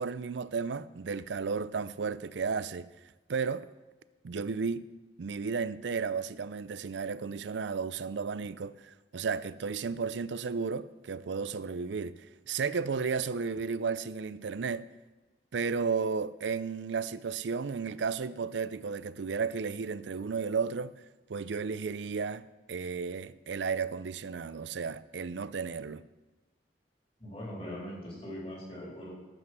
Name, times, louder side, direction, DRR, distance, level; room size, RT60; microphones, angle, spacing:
voice 1, 0.0-2.9 3.3-3.7 4.2-4.8 5.2-14.9 15.5-20.9 21.3-26.0, right 5 dB, 90° right, 0.5 m, -33 dB
voice 2, 27.2-29.1, equal, 35° left, 3.7 m, -41 dB
12.0 x 7.9 x 6.1 m
head